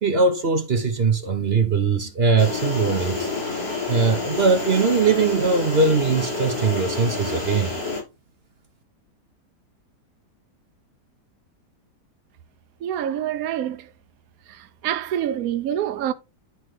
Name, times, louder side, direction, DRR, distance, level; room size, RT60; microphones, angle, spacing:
voice 1, 0.0-3.3 3.9-7.7, right 4 dB, 45° right, 0.9 m, -21 dB
sound 1, 2.4-8.0, left 3 dB, 65° left, 6.0 m, -28 dB
voice 2, 12.8-13.9 14.5-16.1, right 10 dB, 70° right, 1.0 m, -26 dB
11.5 x 4.7 x 3.2 m
omnidirectional pair, 1.8 m